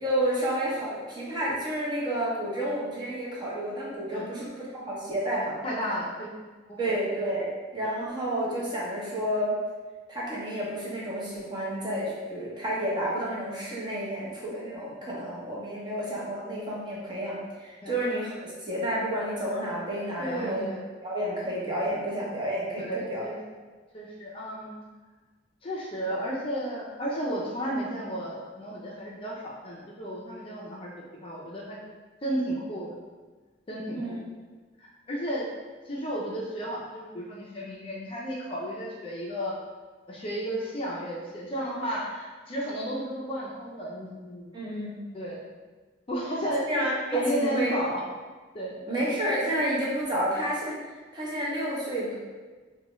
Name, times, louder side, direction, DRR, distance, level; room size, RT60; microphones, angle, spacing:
voice 1, 0.0-5.6 6.8-9.5 10.1-20.7 21.0-23.2 33.9-34.2 44.5-45.0 46.7-47.7 48.9-50.8 51.1-52.1, right 1 dB, 25° right, -6 dB, 0.8 m, -30 dB
voice 2, 5.6-6.3 6.7-6.9 17.8-17.9 20.2-20.8 22.8-23.4 23.9-24.7 25.6-30.9 31.2-31.8 32.2-33.0 33.7-34.2 34.8-35.4 35.9-39.5 40.1-44.5 45.1-45.4 46.1-48.0 48.5-49.0, equal, 30° left, -4 dB, 0.5 m, -33 dB
4.0 x 2.2 x 3.0 m, 1.4 s
head